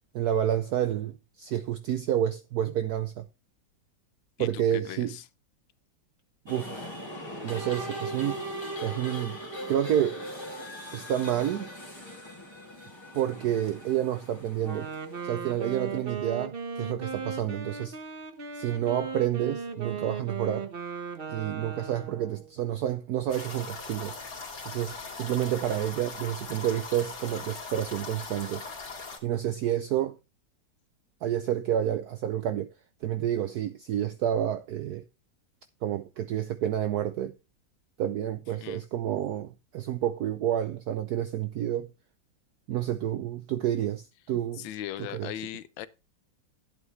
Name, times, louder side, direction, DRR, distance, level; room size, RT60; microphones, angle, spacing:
voice 1, 0.1-3.2 4.4-5.2 6.5-6.9 7.4-8.4 8.8-9.4 9.7-10.3 10.9-11.7 13.1-14.9 15.2-18.0 18.5-20.7 21.3-24.1 24.7-28.6 29.2-30.2 31.2-32.7 33.0-35.0 35.8-37.3 38.0-41.9 42.7-44.7 45.0-45.3, right 11 dB, 65° right, 1.0 m, -29 dB
voice 2, 4.4-5.2 38.6-38.8 44.6-45.9, left 12 dB, 80° left, 1.4 m, -38 dB
sound 1, 6.5-15.9, right 1 dB, 15° left, 2.3 m, -40 dB
Wind instrument woodwind instrument, 14.6-22.5, right 5 dB, 35° right, 1.0 m, -37 dB
sound 2, 23.3-29.2, left 4 dB, 45° left, 2.8 m, -40 dB
11.0 x 8.1 x 3.2 m
omnidirectional pair, 2.1 m